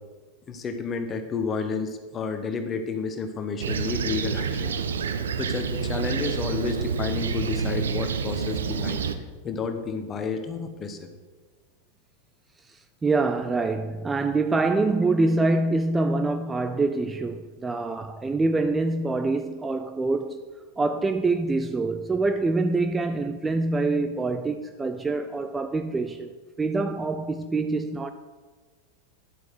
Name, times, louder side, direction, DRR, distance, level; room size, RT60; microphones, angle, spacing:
voice 1, 0.5-4.8 5.4-9.0 9.4-11.0, left 5 dB, 25° left, 1.1 m, -30 dB
Fixed-wing aircraft airplane, 3.6-9.1, right 6 dB, 65° right, 0.6 m, -28 dB
voice 2, 12.7-20.4 20.8-26.3 26.6-28.1, right 3 dB, 15° right, 0.4 m, -25 dB
10.0 x 7.8 x 4.7 m
figure-of-eight pair, 90°, 0 cm